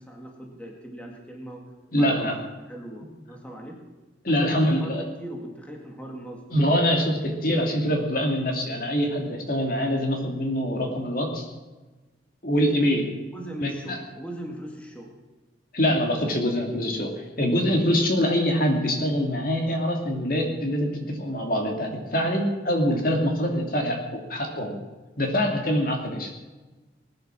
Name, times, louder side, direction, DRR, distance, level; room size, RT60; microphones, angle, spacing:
voice 1, 0.0-1.6 2.0-2.4 2.7-3.8 4.4-6.4 13.3-15.1, right 1 dB, 5° left, 0 dB, 2.1 m, -39 dB
voice 2, 1.9-2.4 4.2-5.0 6.5-11.5 12.4-13.1 13.6-14.0 15.7-24.8 25.2-26.3, equal, 50° left, 2 dB, 2.6 m, -24 dB
20.5 x 10.5 x 6.2 m, 1.2 s
head